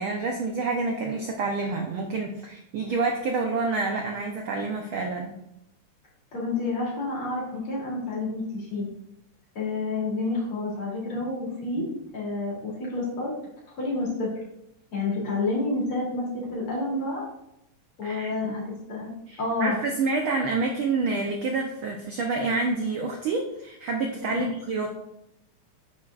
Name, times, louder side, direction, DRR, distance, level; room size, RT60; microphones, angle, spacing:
voice 1, 0.0-5.3 11.8-11.9 18.0-18.6 19.3-24.9, right 3 dB, 75° right, 2 dB, 1.2 m, -28 dB
voice 2, 6.3-8.9 9.6-11.9 12.1-13.3 13.7-14.3 14.9-17.2 18.0-19.1 19.4-19.8 24.3-24.4, left 2 dB, 45° left, -5 dB, 3.8 m, -29 dB
10.0 x 7.3 x 2.5 m, 0.81 s
omnidirectional pair, 3.4 m